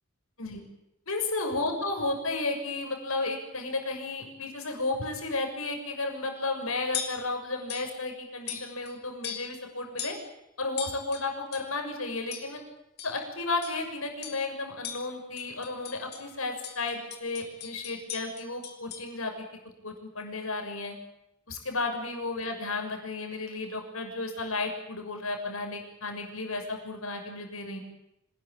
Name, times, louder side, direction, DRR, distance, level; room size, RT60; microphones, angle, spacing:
voice 1, 1.1-10.2 10.6-12.6 13.0-19.3 19.8-21.0 21.5-27.8, left 3 dB, 75° left, 4 dB, 6.9 m, -33 dB
sound 1, 6.3-6.5 6.9-7.3 7.7-8.0 8.5-8.9 9.2-9.6 10.0-10.3 10.8-11.8 12.3-12.6 13.0-13.2 13.6-13.9 14.2-14.5 14.8-16.3 16.6-19.1, left 8 dB, 50° left, 4.5 m, -40 dB
26.5 x 21.0 x 8.9 m, 0.85 s
head